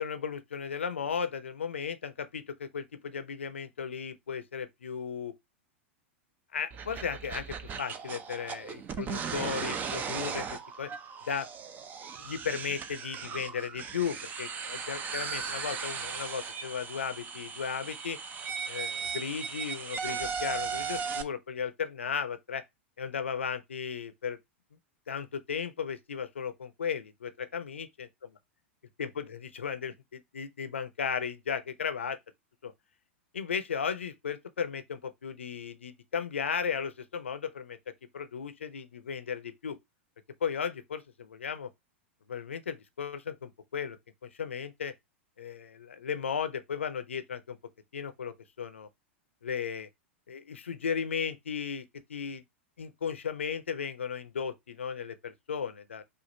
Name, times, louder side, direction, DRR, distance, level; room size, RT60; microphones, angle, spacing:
voice 1, 0.0-5.3 6.5-10.9 11.3-11.5 12.2-18.2 18.7-22.6 23.0-24.4 25.1-28.1 29.0-32.2 32.6-32.7 33.3-39.8 40.4-41.7 42.3-44.0 44.2-44.9 45.4-47.6 47.9-48.9 49.4-49.9 50.3-51.8 52.1-52.4 52.8-56.0, left 7 dB, 75° left, 0.6 m, -35 dB
sound 1, 6.7-21.2, right 6 dB, 25° right, 0.7 m, -37 dB
5.1 x 2.5 x 3.9 m
figure-of-eight pair, 95°, 7 cm